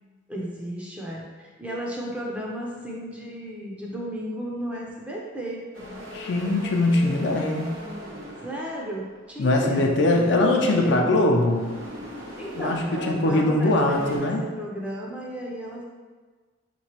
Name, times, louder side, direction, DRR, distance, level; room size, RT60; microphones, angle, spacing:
voice 1, 0.3-5.6 8.4-11.2 12.4-15.8, right 1 dB, 5° right, -4 dB, 0.5 m, -33 dB
sound 1, 5.7-9.6 10.1-13.5 13.8-14.2, equal, 85° right, 1.0 m, -40 dB
voice 2, 6.1-7.6 9.4-11.7 12.5-14.5, left 2 dB, 60° left, 1 dB, 0.5 m, -22 dB
4.4 x 3.0 x 2.9 m, 1.4 s
head